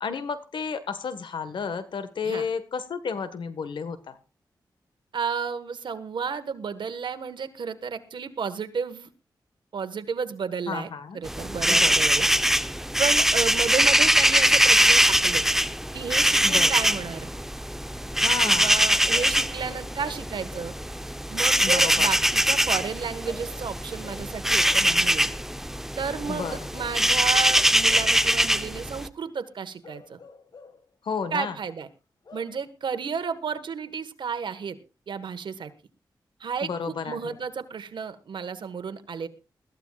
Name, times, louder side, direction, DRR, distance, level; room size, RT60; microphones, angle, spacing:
voice 1, 0.0-4.2 10.7-11.2 11.7-12.0 16.4-16.7 18.2-18.8 21.6-22.1 26.3-26.6 31.0-31.6 36.6-37.4, left 5 dB, 80° left, 11 dB, 1.5 m, -32 dB
voice 2, 5.1-9.1 9.7-12.3 13.0-15.4 15.9-17.3 18.4-20.7 21.3-25.3 26.0-30.2 31.3-31.9 32.3-34.8 35.1-35.7 36.4-39.3, right 6 dB, 75° right, 10 dB, 1.5 m, -32 dB
sound 1, 11.3-29.1, equal, 5° right, 0.8 m, -22 dB
Bark / Livestock farm animals working animals, 19.1-20.9 23.2-25.0 26.1-27.1 27.9-28.3 29.8-30.9 32.2-32.6, left 5 dB, 60° left, 1.8 m, -48 dB
21.0 x 14.5 x 2.4 m, 0.31 s
cardioid pair, 60°, 8 cm